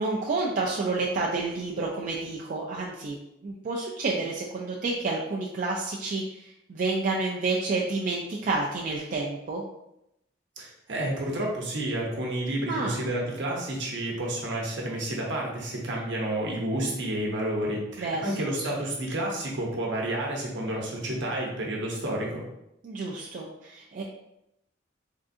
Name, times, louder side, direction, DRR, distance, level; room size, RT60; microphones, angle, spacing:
voice 1, 0.0-3.2 3.4-9.6 12.7-13.0 18.0-18.6 22.8-24.0, right 3 dB, 45° right, -3 dB, 0.3 m, -29 dB
voice 2, 10.6-22.4, right 1 dB, 65° right, -2 dB, 0.8 m, -30 dB
3.6 x 2.5 x 2.5 m, 0.84 s
head